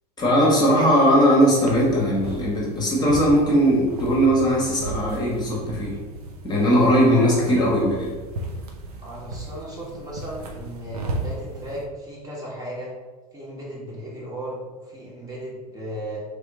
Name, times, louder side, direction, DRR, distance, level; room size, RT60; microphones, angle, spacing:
voice 1, 0.2-6.0 6.4-8.1, equal, 20° left, -4 dB, 1.1 m, -19 dB
sound 1, 1.5-11.8, right 2 dB, 65° right, 0.7 m, -35 dB
voice 2, 6.8-7.5 9.0-12.9 13.3-16.2, right 1 dB, 20° right, -5 dB, 1.1 m, -35 dB
3.4 x 2.8 x 3.5 m, 1.3 s
figure-of-eight pair, 85°, 20 cm